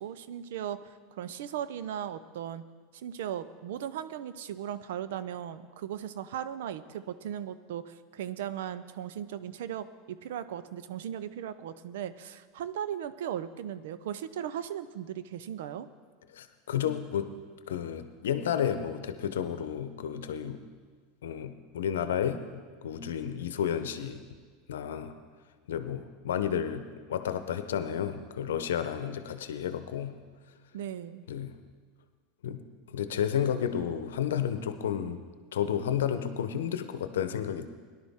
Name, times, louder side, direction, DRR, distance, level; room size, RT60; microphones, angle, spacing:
voice 1, 0.0-2.6 2.9-15.9 30.7-31.2, right 10 dB, 80° right, 14 dB, 0.6 m, -37 dB
voice 2, 16.3-17.3 17.7-20.6 21.2-22.4 22.8-24.2 24.7-25.1 25.7-30.2 31.3-31.6 32.4-35.2 35.5-37.7, left 9 dB, 90° left, 10 dB, 0.8 m, -31 dB
18.0 x 11.0 x 3.6 m, 1.5 s
supercardioid pair, 115°, 0 cm